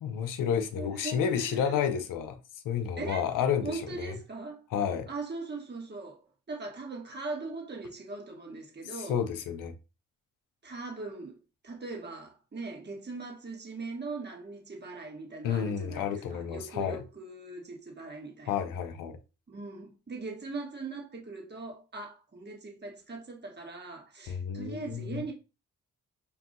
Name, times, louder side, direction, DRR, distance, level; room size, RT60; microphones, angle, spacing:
voice 1, 0.0-2.4 2.6-4.2 4.7-5.1 9.0-9.7 15.4-17.0 18.5-19.2 24.3-25.3, left 8 dB, 85° left, 0.7 m, -31 dB
voice 2, 0.8-1.8 3.0-3.3 3.6-4.6 5.1-9.2 10.6-18.6 19.5-25.3, right 3 dB, 35° right, 1.4 m, -40 dB
6.7 x 2.6 x 2.6 m
supercardioid pair, 55°, 31 cm